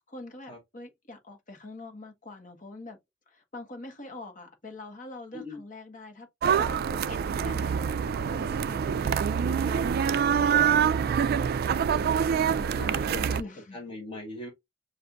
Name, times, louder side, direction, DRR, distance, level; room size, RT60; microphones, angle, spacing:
voice 1, 0.1-3.0 3.3-6.3 6.6-11.0 12.5-13.9, left 2 dB, 45° left, 1.4 m, -45 dB
sound 1, 6.4-13.4, right 7 dB, 50° right, 0.3 m, -25 dB
voice 2, 12.8-13.2 13.7-14.5, left 1 dB, 30° left, 1.3 m, -40 dB
6.4 x 2.6 x 2.5 m
head